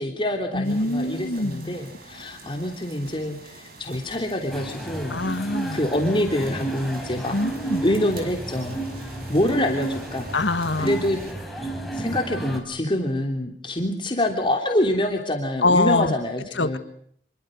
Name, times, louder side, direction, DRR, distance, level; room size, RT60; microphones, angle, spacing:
voice 1, 0.0-5.5 5.7-7.4 7.8-10.3 10.8-11.2 11.9-16.8, left 1 dB, 25° left, 2 dB, 3.1 m, -26 dB
voice 2, 0.5-1.8 5.1-5.8 7.3-7.8 10.3-10.9 15.6-16.1 16.6-16.8, left 2 dB, 75° left, 11 dB, 1.8 m, -24 dB
Soft Rain Ambience edlarez vsnr, 0.6-11.3, right 2 dB, 55° right, 6.7 m, -45 dB
sound 1, 4.5-12.6, right 2 dB, ahead, 5.7 m, -32 dB
27.0 x 23.0 x 6.5 m, 0.65 s
head